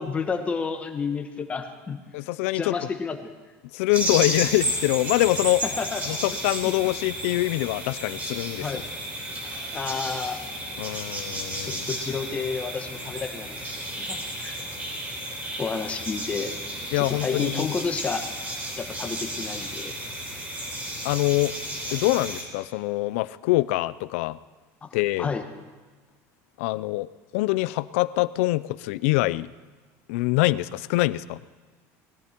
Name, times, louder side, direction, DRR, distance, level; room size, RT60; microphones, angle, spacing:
voice 1, 0.0-2.0 2.5-3.3 5.6-6.0 6.6-6.7 8.6-8.8 9.7-10.4 11.6-14.6 15.6-16.5 16.9-18.2 18.8-19.9 24.8-24.9 25.2-25.5, left 5 dB, 20° left, 6 dB, 1.3 m, -31 dB
voice 2, 2.1-2.9 3.7-5.6 6.1-8.8 10.8-11.9 16.9-17.8 21.0-21.5 21.9-24.4 24.9-25.3 26.6-29.5 30.1-31.4, left 19 dB, 90° left, 17 dB, 0.5 m, -24 dB
sound 1, 3.9-22.4, right 1 dB, 25° right, 4.0 m, -33 dB
20.0 x 14.5 x 4.4 m, 1.3 s
cardioid pair, 160°, 7 cm